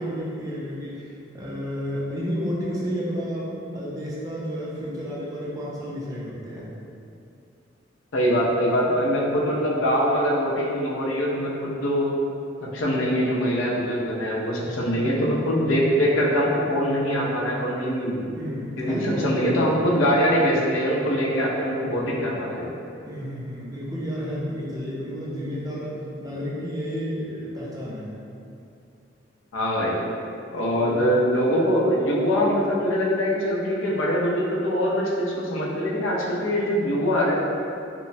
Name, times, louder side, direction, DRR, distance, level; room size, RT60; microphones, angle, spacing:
voice 1, 0.0-6.7 14.9-15.4 18.4-19.8 23.1-28.1 30.8-31.0, equal, 20° right, -6 dB, 0.4 m, -31 dB
voice 2, 8.1-12.0 12.7-18.4 18.8-22.7 29.5-30.0 30.5-37.3, equal, 90° left, -4 dB, 0.5 m, -23 dB
2.9 x 2.0 x 2.6 m, 2.6 s
head